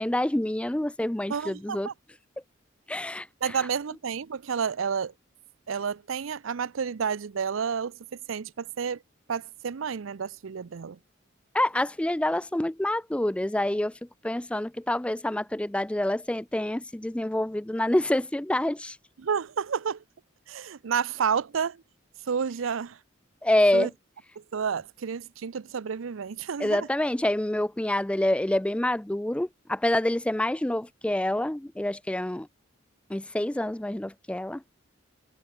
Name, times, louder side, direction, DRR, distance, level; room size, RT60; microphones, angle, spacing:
voice 1, 0.0-1.9 2.9-3.6 11.5-13.9 14.2-19.0 23.4-23.9 26.6-32.5 33.1-34.6, left 1 dB, 5° left, 0.3 m, -27 dB
voice 2, 1.3-1.9 3.4-5.1 5.7-9.0 9.3-11.0 19.2-20.0 20.5-21.8 22.3-23.0 23.7-23.9 24.5-26.9, right 6 dB, 80° right, 0.5 m, -30 dB
head